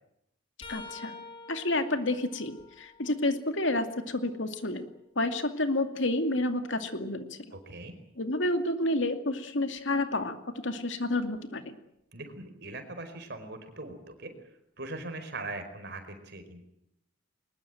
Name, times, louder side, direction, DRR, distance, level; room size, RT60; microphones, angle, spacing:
sound 1, 0.6-4.4 4.9-6.9 9.8-10.0 11.2-11.4 12.7-12.8, left 3 dB, 25° left, 6.4 m, -50 dB
voice 1, 0.7-1.2 1.5-4.9 5.2-7.6 8.2-10.4 10.6-11.8, left 1 dB, 65° left, 7 dB, 2.4 m, -30 dB
voice 2, 7.5-7.9 12.1-14.3 14.8-16.6, right 2 dB, 55° right, 8 dB, 4.7 m, -40 dB
22.5 x 21.0 x 9.1 m, 0.78 s
head